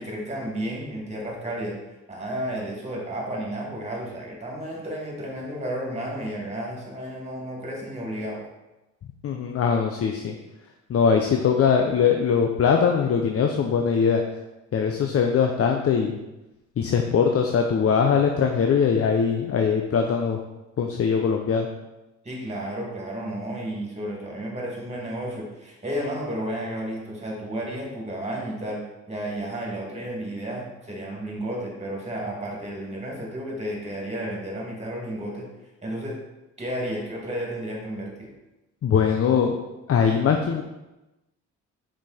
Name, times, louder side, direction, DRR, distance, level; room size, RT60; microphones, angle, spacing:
voice 1, 0.0-1.8 2.1-8.4 22.2-35.5 35.8-36.2 36.6-38.3, right 1 dB, 20° right, -2 dB, 2.4 m, -32 dB
voice 2, 9.2-10.3 10.9-14.2 14.7-16.2 16.8-20.4 20.8-21.7 38.8-39.6 39.9-40.6, left 6 dB, 50° left, 3 dB, 0.7 m, -21 dB
5.9 x 5.2 x 4.2 m, 1.0 s
cardioid pair, 90°, 30 cm